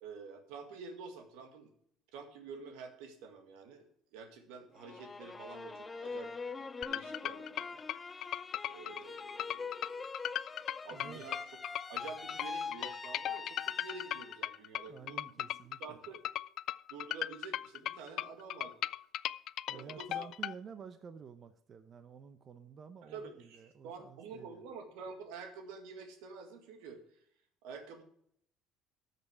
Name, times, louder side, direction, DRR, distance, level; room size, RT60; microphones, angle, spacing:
voice 1, 0.0-1.7 2.1-6.3 6.9-7.8 8.7-10.1 10.8-11.4 11.9-15.3 15.8-16.2 16.9-18.7 19.7-20.3 23.1-27.0 27.6-28.0, right 5 dB, 85° right, 5 dB, 1.9 m, -48 dB
sound 1, 4.8-14.6 15.0-15.7, left 4 dB, 20° left, 0.6 m, -44 dB
sound 2, 6.8-20.5, left 12 dB, 60° left, 0.3 m, -38 dB
voice 2, 10.9-11.3 14.8-16.0 19.7-24.6, right 6 dB, 40° right, 10 dB, 0.8 m, -51 dB
13.0 x 6.8 x 4.7 m, 0.68 s
cardioid pair, 110°, 0 cm